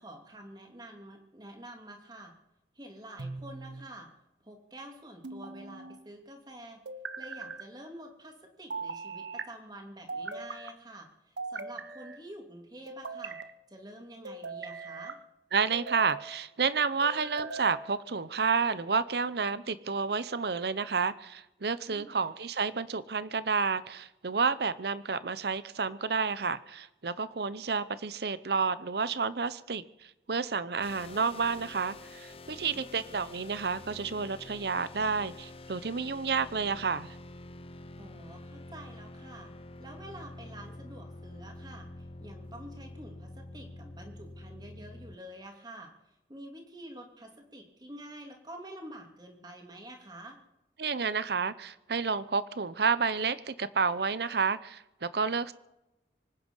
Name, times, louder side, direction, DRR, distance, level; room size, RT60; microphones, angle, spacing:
voice 1, 0.0-2.3 2.7-4.1 4.4-6.8 7.2-13.4 13.7-15.2 21.9-22.2 32.6-33.2 38.0-39.5 39.8-45.9 46.3-50.4, right 1 dB, 25° right, 3 dB, 2.8 m, -48 dB
sound 1, 3.2-3.9 5.2-6.0 6.9-7.6 8.7-9.5 10.1-10.7 11.4-12.2 12.9-13.5 14.2-15.2 15.7-16.3 17.0-17.8, right 4 dB, 85° right, 1.1 m, -40 dB
voice 2, 15.5-29.8 30.3-37.1 50.8-55.5, right 5 dB, 65° right, 16 dB, 0.7 m, -30 dB
sound 2, 30.8-45.1, left 2 dB, 30° left, 0.7 m, -47 dB
25.0 x 9.7 x 5.5 m, 0.93 s
head